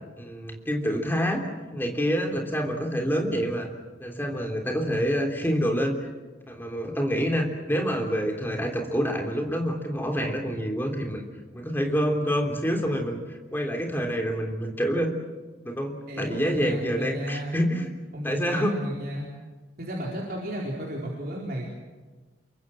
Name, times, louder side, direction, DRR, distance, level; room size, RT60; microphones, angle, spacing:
voice 1, 0.2-1.4 1.7-3.7 4.0-6.0 6.5-11.2 11.5-15.1 15.6-17.9 18.2-18.8, equal, 10° left, 3 dB, 3.3 m, -27 dB
voice 2, 16.1-17.5 18.1-19.3 19.8-21.6, equal, 50° right, -3 dB, 4.5 m, -33 dB
28.0 x 23.5 x 7.7 m, 1.3 s
head